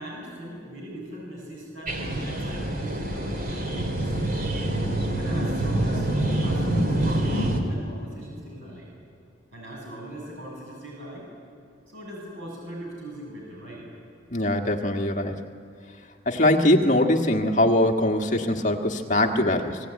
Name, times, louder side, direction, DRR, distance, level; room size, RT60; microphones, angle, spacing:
voice 1, 0.0-4.2 5.2-8.9 9.5-11.3 11.9-13.9, right 1 dB, 70° right, -2 dB, 7.2 m, -40 dB
sound 1, 1.9-7.6, right 1 dB, 45° right, 2.8 m, -26 dB
voice 2, 14.3-15.4 16.2-19.8, left 1 dB, 40° left, 3 dB, 1.6 m, -22 dB
28.0 x 18.5 x 9.3 m, 2.4 s
head